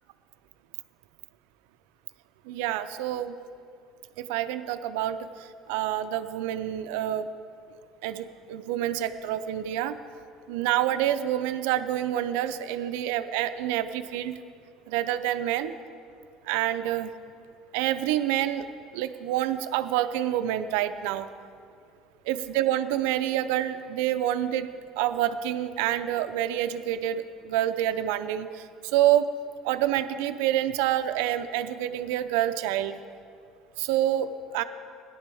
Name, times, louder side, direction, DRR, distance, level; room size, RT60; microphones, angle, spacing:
voice 1, 2.5-3.4 4.2-7.3 8.0-10.0 10.5-14.4 14.9-15.7 16.4-17.1 17.7-18.7 18.9-21.3 22.3-24.7 25.0-29.3 29.6-33.0 33.8-34.6, right 12 dB, 85° right, 11 dB, 0.5 m, -27 dB
17.5 x 11.0 x 3.5 m, 2.4 s
supercardioid pair, 100°, 0 cm